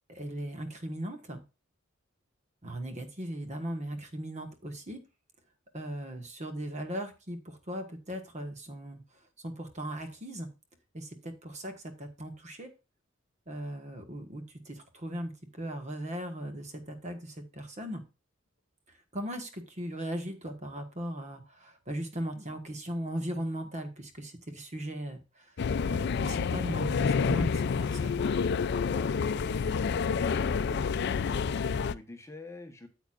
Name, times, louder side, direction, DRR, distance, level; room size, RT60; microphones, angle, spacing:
voice 1, 0.1-1.4 2.6-5.0 5.7-9.0 9.4-10.5 10.9-12.7 13.5-18.0 19.1-25.5 25.9-28.3, right 1 dB, 35° right, 6 dB, 1.4 m, -38 dB
sound 1, 25.6-31.9, left 5 dB, 60° left, 0.4 m, -28 dB
voice 2, 31.2-32.9, left 2 dB, 15° left, 5 dB, 1.1 m, -47 dB
8.9 x 8.2 x 2.5 m, 0.30 s
head